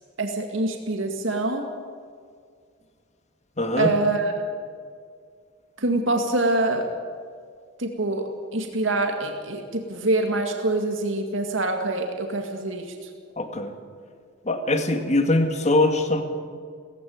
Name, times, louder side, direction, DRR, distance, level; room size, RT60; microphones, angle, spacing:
voice 1, 0.2-1.6 3.8-4.3 5.8-6.8 7.8-13.1, right 2 dB, 75° right, 3 dB, 2.1 m, -25 dB
voice 2, 3.6-3.9 13.4-13.7 14.5-16.2, left 2 dB, 35° left, 6 dB, 2.0 m, -22 dB
17.5 x 16.0 x 9.6 m, 2.1 s
head